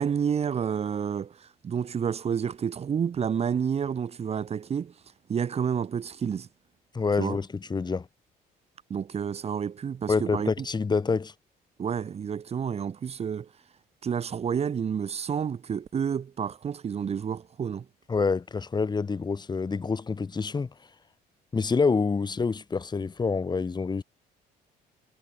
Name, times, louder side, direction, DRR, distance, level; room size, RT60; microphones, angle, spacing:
voice 1, 0.0-4.9 5.3-6.5 7.2-7.4 8.9-10.5 11.8-13.5 14.0-17.8, right 7 dB, 40° right, 1.3 m, -29 dB
voice 2, 6.9-8.1 10.1-11.3 18.1-20.7 21.5-24.0, left 4 dB, 25° left, 2.6 m, -27 dB
cardioid pair, 110°, 17 cm